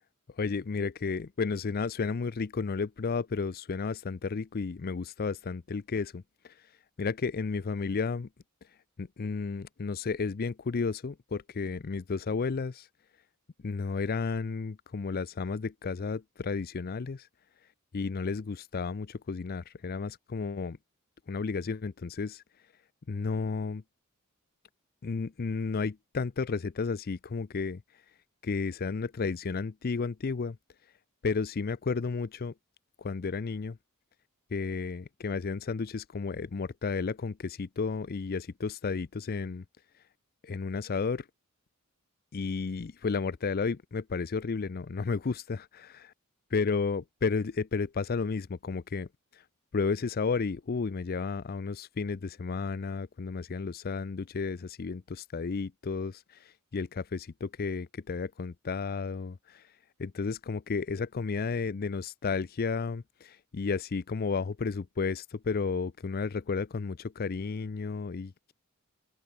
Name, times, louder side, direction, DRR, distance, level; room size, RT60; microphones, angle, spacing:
voice 1, 0.4-6.7 7.0-8.3 9.0-12.9 13.6-17.3 17.9-20.8 21.3-22.4 23.1-23.8 25.0-27.8 28.4-30.6 31.2-32.5 33.0-33.8 34.5-39.6 40.4-41.3 42.3-45.9 46.5-49.4 49.7-59.7 60.0-68.5, left 4 dB, 45° left, 0.5 m, -32 dB
head